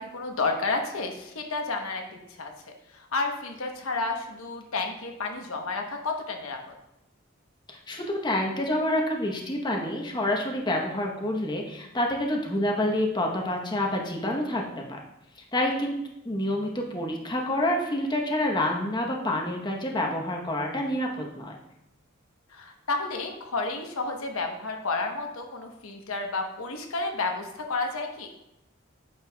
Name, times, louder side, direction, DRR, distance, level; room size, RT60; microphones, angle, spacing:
voice 1, 0.0-2.5 2.9-6.7 22.5-28.3, left 3 dB, 75° left, 3 dB, 1.0 m, -31 dB
voice 2, 7.7-14.6 14.9-15.0 15.5-15.9 16.2-21.5, left 1 dB, 20° left, 0 dB, 0.9 m, -28 dB
9.0 x 6.7 x 2.3 m, 0.85 s
head